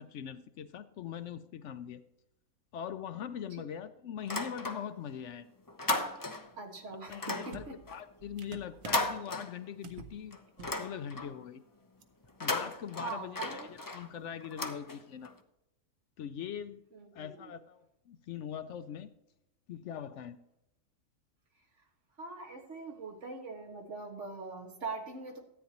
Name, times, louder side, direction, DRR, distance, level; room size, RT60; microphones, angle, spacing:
voice 1, 0.0-2.0 2.7-5.5 7.1-11.6 12.4-13.4 13.7-15.3 16.2-16.8 17.1-19.1 19.7-20.4, left 9 dB, 70° left, 12 dB, 0.8 m, -42 dB
sound 1, 4.2-5.1 5.4-6.6 7.1-10.0 10.3-11.4 12.2-15.4, left 2 dB, 25° left, 0.5 m, -37 dB
voice 2, 6.6-7.8 13.0-13.7 16.9-17.5 22.2-25.4, right 3 dB, 60° right, 1 dB, 2.1 m, -42 dB
sound 2, 7.1-7.2 7.5-9.2 9.8-10.2 10.5-10.8 11.1-11.3 12.0-12.1, right 7 dB, 85° right, 1.3 m, -49 dB
13.5 x 9.2 x 2.9 m, 0.87 s
omnidirectional pair, 1.4 m